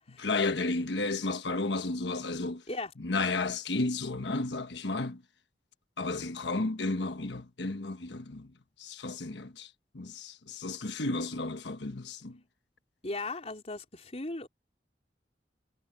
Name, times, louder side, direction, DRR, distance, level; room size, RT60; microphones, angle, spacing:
voice 1, 0.1-2.6 3.0-5.2 6.0-8.5 8.8-9.7 9.9-12.4, left 3 dB, 80° left, 1.2 m, -32 dB
voice 2, 13.0-14.5, left 2 dB, 35° left, 4.0 m, -37 dB
head